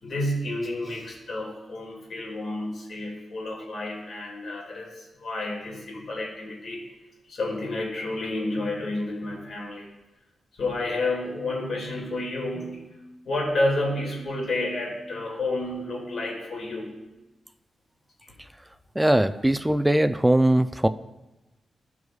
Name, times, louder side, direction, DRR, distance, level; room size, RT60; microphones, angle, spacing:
voice 1, 0.0-6.8 7.3-9.9 10.6-12.9 13.2-16.9 18.2-18.3, left 2 dB, 65° left, -2 dB, 2.3 m, -30 dB
voice 2, 19.0-20.9, right 1 dB, 10° right, 11 dB, 0.4 m, -20 dB
14.0 x 4.7 x 2.4 m, 1.0 s
cardioid pair, 80°, 0 cm